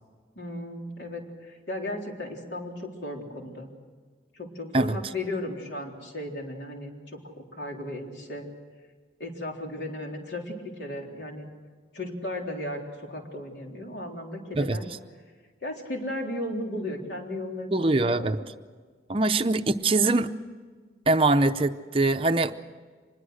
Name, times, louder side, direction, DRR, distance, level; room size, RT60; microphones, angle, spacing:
voice 1, 0.4-3.7 4.3-8.5 9.2-11.5 11.9-12.8 13.1-14.9 15.6-18.4, left 1 dB, 70° left, 1 dB, 3.9 m, -35 dB
voice 2, 17.7-18.4 19.1-20.3 21.1-22.5, right 2 dB, 30° right, 9 dB, 0.6 m, -23 dB
25.0 x 21.0 x 6.4 m, 1.5 s
head